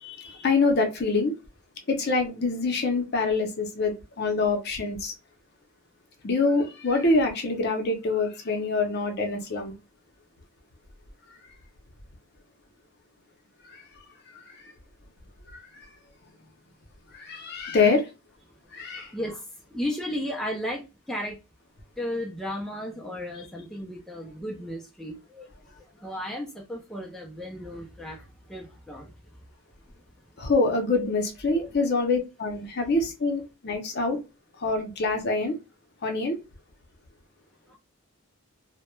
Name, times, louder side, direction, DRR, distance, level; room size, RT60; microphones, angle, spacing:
voice 1, 0.0-1.3 1.9-5.1 6.2-9.7 13.7-13.8 15.5-15.6 17.1-18.1 18.7-19.1 30.4-34.2 34.6-35.5 36.0-36.4, left 3 dB, 50° left, 0.6 m, -25 dB
voice 2, 19.1-21.4 22.0-25.5 25.8-29.4 31.5-31.7 37.7-37.8, equal, ahead, 0.3 m, -35 dB
2.2 x 2.1 x 3.0 m
head